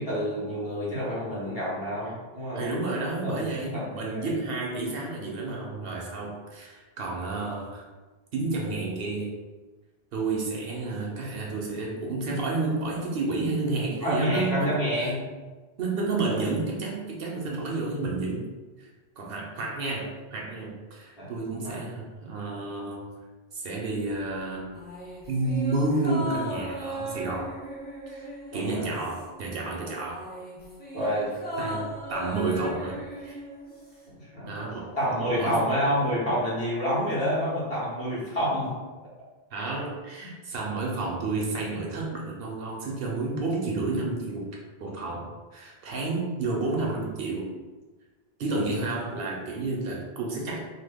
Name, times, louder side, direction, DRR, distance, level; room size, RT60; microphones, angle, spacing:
voice 1, 0.0-2.7 3.2-4.3 14.0-15.2 16.3-16.4 21.2-21.3 21.6-21.8 28.5-28.9 30.9-31.3 34.1-34.5 35.0-38.7 40.2-40.3, equal, 35° left, -9 dB, 1.3 m, -28 dB
voice 2, 2.5-7.8 8.3-9.3 10.1-15.1 15.8-18.5 18.8-18.9 19.2-23.1 23.5-24.7 25.3-27.6 28.1-30.2 31.6-33.4 34.5-34.9 35.3-35.7 39.5-44.5 44.8-47.5 48.4-50.6, right 3 dB, 70° right, -2 dB, 0.7 m, -30 dB
sound 1, 24.7-29.5 29.8-34.1 34.4-34.5, equal, 10° left, 0.6 m, -37 dB
2.8 x 2.1 x 3.4 m, 1.3 s
omnidirectional pair, 1.1 m